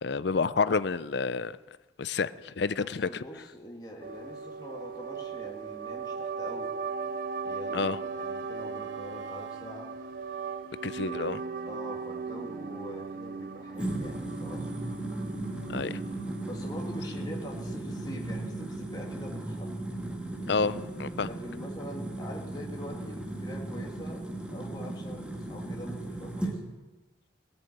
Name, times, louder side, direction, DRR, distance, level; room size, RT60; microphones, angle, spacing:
voice 1, 0.0-1.6 2.0-3.2 7.7-8.0 10.8-11.4 15.7-16.0 20.5-21.3, left 4 dB, 65° left, 16 dB, 0.5 m, -29 dB
voice 2, 2.8-6.7 7.4-9.9 11.6-14.7 16.4-19.7 21.2-24.2 24.5-26.6, equal, 20° left, -1 dB, 2.0 m, -44 dB
sound 1, 4.0-17.0, right 5 dB, 45° right, 0.4 m, -38 dB
Wind instrument woodwind instrument, 6.8-11.7, right 3 dB, 75° right, 1.0 m, -46 dB
sound 2, 13.8-26.6, right 1 dB, 5° right, 1.7 m, -36 dB
17.5 x 7.0 x 9.2 m, 1.2 s
head